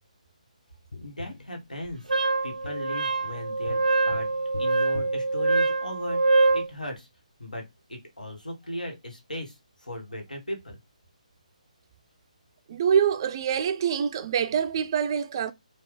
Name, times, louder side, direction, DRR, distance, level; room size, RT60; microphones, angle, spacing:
Tap, 0.9-6.2 8.8-8.9, left 3 dB, 70° left, 0.5 m, -44 dB
voice 1, 1.0-2.1 2.4-3.8 4.1-4.3 4.6-6.2 6.5-7.1 7.4-7.6 7.9-10.8, left 1 dB, 90° left, 1.4 m, -37 dB
Wind instrument woodwind instrument, 2.1-6.7, right 3 dB, 80° right, 0.5 m, -24 dB
voice 2, 12.7-15.5, right 8 dB, 30° right, 0.3 m, -25 dB
3.2 x 2.3 x 3.2 m
figure-of-eight pair, 150°, 4 cm